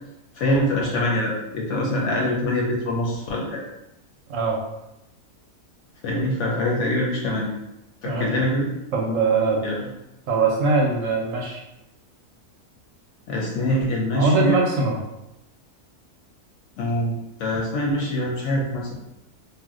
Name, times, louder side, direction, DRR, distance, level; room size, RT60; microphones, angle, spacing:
voice 1, 0.4-3.6 6.0-7.5 8.0-8.7 9.6-9.8 13.3-14.6 16.8-18.9, left 1 dB, 65° left, -2 dB, 0.8 m, -24 dB
voice 2, 8.0-8.4 8.9-9.6 10.3-11.6 14.1-15.0, right 3 dB, 70° right, -1 dB, 0.9 m, -22 dB
2.5 x 2.1 x 3.6 m, 0.90 s
omnidirectional pair, 1.5 m